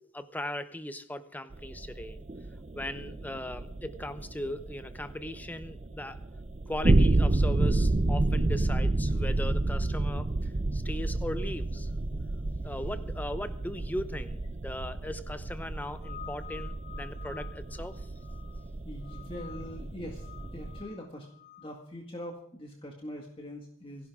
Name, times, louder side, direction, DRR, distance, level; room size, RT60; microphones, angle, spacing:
voice 1, 0.1-2.2 2.7-6.2 6.7-11.9 12.6-18.1, left 1 dB, 10° left, 0.8 m, -38 dB
sound 1, 1.5-20.8, right 2 dB, 35° right, 0.6 m, -30 dB
voice 2, 7.4-7.8 11.8-11.9 18.8-20.3 20.5-21.3 21.6-24.1, equal, 25° left, 1.9 m, -43 dB
sound 2, 15.7-18.6 19.0-19.8 20.1-21.7, left 10 dB, 60° left, 3.8 m, -49 dB
29.0 x 11.0 x 3.6 m
head